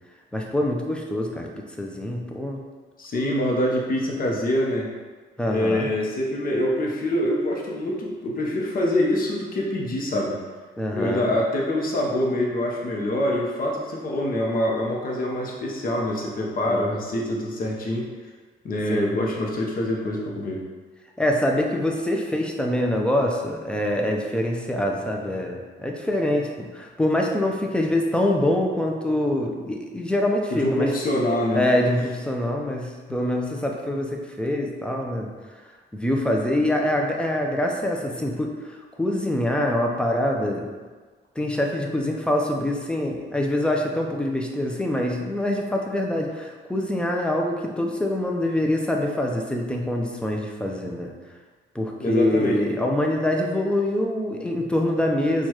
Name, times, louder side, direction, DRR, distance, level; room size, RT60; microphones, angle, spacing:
voice 1, 0.3-1.5 1.8-2.6 5.4-5.9 10.8-11.3 16.7-16.9 18.9-19.1 21.2-30.9 31.5-35.3 35.9-40.6 41.4-51.1 51.7-55.5, left 1 dB, 5° left, 1 dB, 0.5 m, -25 dB
voice 2, 3.0-4.9 5.5-10.4 10.9-18.1 18.6-20.6 30.5-31.6 33.1-33.2 52.0-52.6, left 1 dB, 45° left, -1 dB, 0.8 m, -25 dB
4.4 x 2.4 x 2.9 m, 1.4 s
cardioid pair, 90°, 20 cm